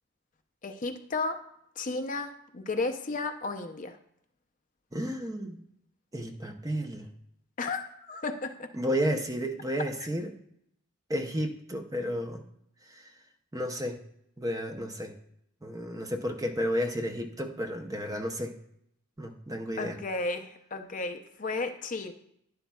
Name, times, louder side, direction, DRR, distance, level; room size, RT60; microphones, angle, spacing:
voice 1, 0.6-1.4 1.8-4.0 7.6-8.7 19.8-22.1, left 3 dB, 35° left, 7 dB, 0.5 m, -33 dB
voice 2, 4.9-5.6 6.1-7.1 8.7-10.3 11.1-12.4 12.9-13.1 13.5-14.0 14.4-15.1 15.6-18.5 19.2-20.0, equal, 15° right, 4 dB, 0.6 m, -32 dB
11.5 x 10.0 x 2.3 m, 0.74 s
head